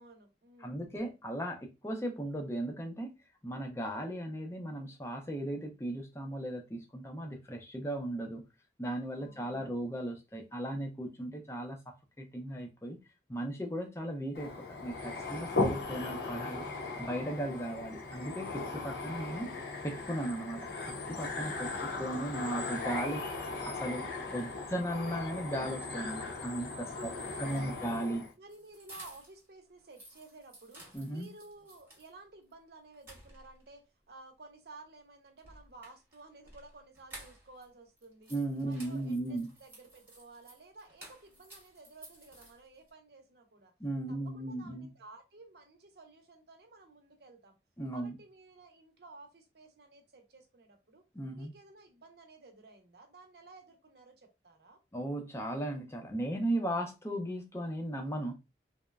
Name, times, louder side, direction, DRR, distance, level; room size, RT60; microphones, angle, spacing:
voice 1, 0.0-0.9 9.1-9.7 17.5-17.8 26.8-28.0 28.4-38.3 38.6-43.7 44.1-47.6 47.9-51.0 51.3-54.8, right 2 dB, 65° right, 0.7 m, -54 dB
voice 2, 0.6-3.1 3.4-8.4 8.8-13.0 13.3-16.6 17.0-19.5 19.8-20.7 21.1-23.2 23.6-26.9 27.4-28.3 30.9-31.3 38.3-39.5 43.8-44.9 47.8-48.1 51.1-51.5 54.9-58.3, right 1 dB, 15° left, 0.5 m, -36 dB
sound 1, 14.3-28.3, left 3 dB, 65° left, 0.6 m, -38 dB
sound 2, 27.4-29.5 29.8-32.1 32.5-32.6 32.9-33.8 35.4-37.7 38.0-42.9, right 1 dB, 10° right, 0.9 m, -54 dB
3.0 x 2.1 x 2.3 m
head